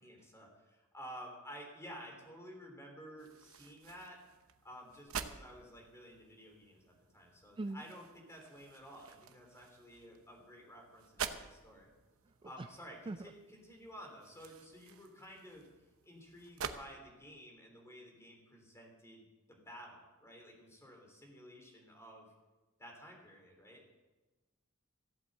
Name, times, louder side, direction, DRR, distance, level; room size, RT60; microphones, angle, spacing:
voice 1, 0.0-4.2 4.6-11.9 12.4-15.7 16.0-22.3 22.8-23.8, equal, 15° left, 0 dB, 3.4 m, -53 dB
sound 1, 3.2-16.8, right 7 dB, 75° right, 0.9 m, -49 dB
voice 2, 12.2-12.7 13.1-13.3, right 2 dB, 25° right, 9 dB, 0.3 m, -42 dB
15.0 x 8.3 x 7.7 m, 1.2 s
head